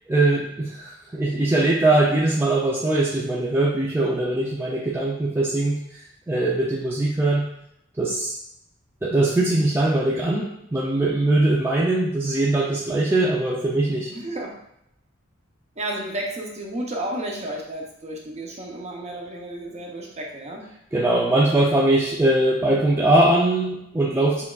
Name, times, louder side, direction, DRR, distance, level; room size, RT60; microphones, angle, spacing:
voice 1, 0.1-5.8 6.3-7.4 8.0-8.3 9.0-14.1 20.9-24.4, right 2 dB, 10° right, -4 dB, 0.4 m, -21 dB
voice 2, 14.1-14.6 15.8-20.7, right 1 dB, 35° right, -1 dB, 0.7 m, -32 dB
5.6 x 2.4 x 2.3 m, 0.77 s
head